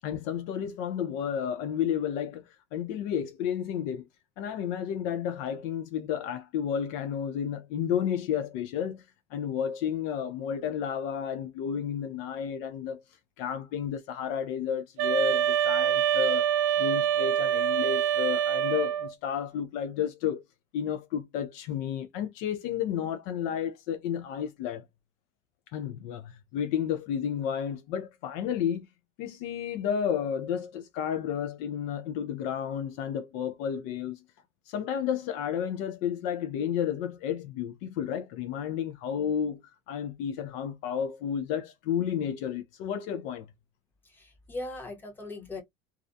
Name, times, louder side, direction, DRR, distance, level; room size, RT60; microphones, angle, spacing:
voice 1, 0.0-2.5 2.7-4.1 4.4-9.0 9.3-13.0 13.4-16.4 16.8-20.4 20.7-24.9 25.7-28.9 29.2-34.2 34.7-39.6 39.9-43.5, left 8 dB, 60° left, 0.4 m, -31 dB
sound 1, 15.0-19.1, right 10 dB, 65° right, 0.6 m, -25 dB
voice 2, 44.0-45.6, left 2 dB, 15° left, 0.8 m, -39 dB
2.4 x 2.1 x 2.5 m
supercardioid pair, 140°, 15 cm